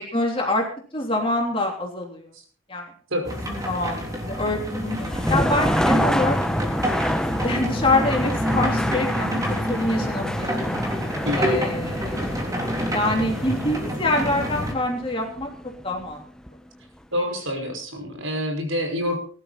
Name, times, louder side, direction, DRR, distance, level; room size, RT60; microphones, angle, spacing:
voice 1, 0.1-0.7 0.9-2.2 2.7-2.9 3.5-6.3 7.4-9.4 9.7-10.5 11.3-12.3 12.9-15.5 15.8-16.2, left 2 dB, 25° left, 0 dB, 3.4 m, -25 dB
sound 1, 3.2-14.7, equal, 15° right, 3.3 m, -28 dB
sound 2, 4.8-16.7, equal, 5° left, 0.8 m, -28 dB
voice 2, 11.3-11.7 17.1-19.2, equal, 70° right, 3 dB, 5.4 m, -27 dB
21.0 x 12.0 x 4.2 m, 0.43 s
head